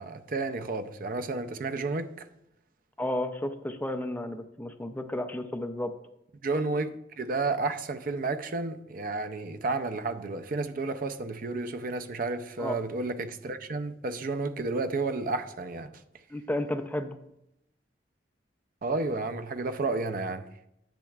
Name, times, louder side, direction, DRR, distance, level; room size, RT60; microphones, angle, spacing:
voice 1, 0.0-2.3 6.4-16.0 18.8-20.5, right 3 dB, 50° right, 0.5 m, -31 dB
voice 2, 3.0-5.9 12.6-12.7 16.3-17.2, left 1 dB, 10° left, 0.5 m, -32 dB
10.5 x 7.4 x 2.4 m
head